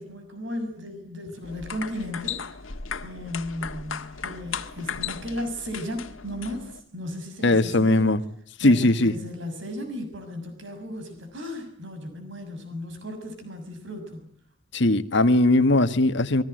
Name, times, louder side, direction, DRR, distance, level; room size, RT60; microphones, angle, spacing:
voice 1, 0.0-2.6 3.0-8.1 8.6-14.2, left 1 dB, 65° right, 6.6 m, -35 dB
sound 1, 1.4-6.8, left 6 dB, 90° left, 1.8 m, -36 dB
voice 2, 7.4-8.2 8.6-9.1 14.7-16.4, left 2 dB, 65° left, 1.6 m, -19 dB
25.5 x 22.0 x 7.9 m
head